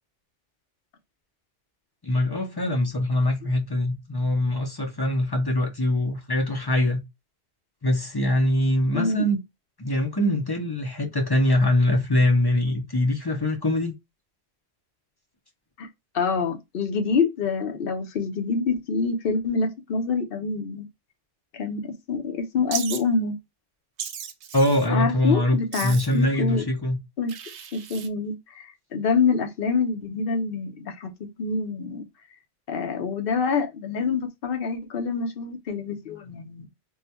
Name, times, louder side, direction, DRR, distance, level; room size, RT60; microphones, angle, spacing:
voice 1, 2.0-7.0 7.8-9.4 9.8-13.9 24.5-27.0, left 1 dB, 30° left, 0.5 m, -23 dB
voice 2, 8.9-9.2 15.8-15.9 16.1-20.9 21.5-23.4 24.9-26.6 27.2-27.3 27.7-32.0 32.7-36.7, left 4 dB, 60° left, 0.9 m, -26 dB
Wild animals, 22.7-23.0 24.0-24.9 25.7-26.2 27.3-28.1, right 8 dB, 90° right, 0.9 m, -35 dB
3.6 x 2.2 x 2.7 m
omnidirectional pair, 1.1 m